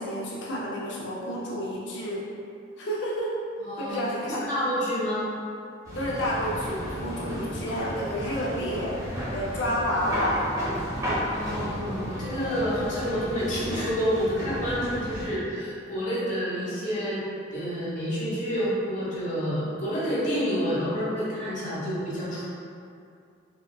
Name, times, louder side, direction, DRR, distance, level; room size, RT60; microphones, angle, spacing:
voice 1, 0.0-2.2 2.8-3.4 3.8-4.5 5.9-9.0 9.3-10.5, equal, 65° left, -6 dB, 0.5 m, -30 dB
voice 2, 3.6-5.3 11.3-17.2 17.5-22.4, equal, 40° left, -9 dB, 0.9 m, -29 dB
sound 1, 5.8-15.3, equal, 15° right, 0.7 m, -33 dB
3.5 x 2.3 x 2.2 m, 2.4 s
head